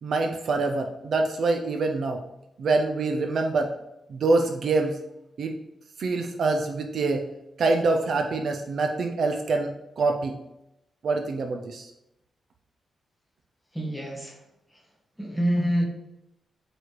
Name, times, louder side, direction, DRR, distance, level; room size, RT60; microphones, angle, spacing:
voice 1, 0.0-2.2 2.6-3.7 4.1-5.0 5.4-5.5 6.0-7.2 7.6-10.4 11.0-11.9, right 3 dB, 55° right, 4 dB, 0.6 m, -25 dB
voice 2, 13.7-14.4 15.2-15.9, equal, 5° left, -1 dB, 1.4 m, -26 dB
8.1 x 3.4 x 4.5 m, 0.86 s
wide cardioid pair, 160°, 0 cm